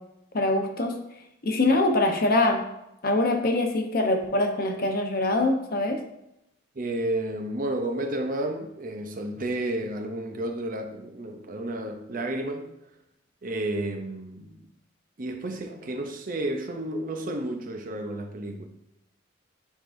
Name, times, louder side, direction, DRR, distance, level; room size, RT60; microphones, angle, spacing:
voice 1, 0.3-1.0 1.4-2.6 3.0-6.0, left 2 dB, 50° left, 0.8 m, -23 dB
voice 2, 6.8-12.7 13.4-14.6 15.2-18.7, right 1 dB, 45° right, 0.6 m, -31 dB
9.8 x 3.7 x 2.6 m
head